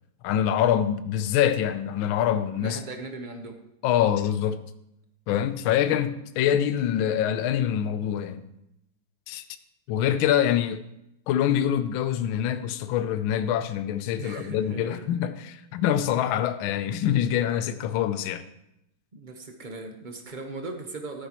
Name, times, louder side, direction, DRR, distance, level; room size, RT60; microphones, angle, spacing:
voice 1, 0.2-2.8 3.8-4.6 5.3-8.5 9.3-9.4 9.9-10.8 11.3-18.4, left 10 dB, 75° left, 1.4 m, -25 dB
voice 2, 2.6-3.6 10.5-10.7 14.2-15.1 19.1-21.3, right 3 dB, 35° right, 0.7 m, -38 dB
13.5 x 9.8 x 3.1 m
omnidirectional pair, 2.4 m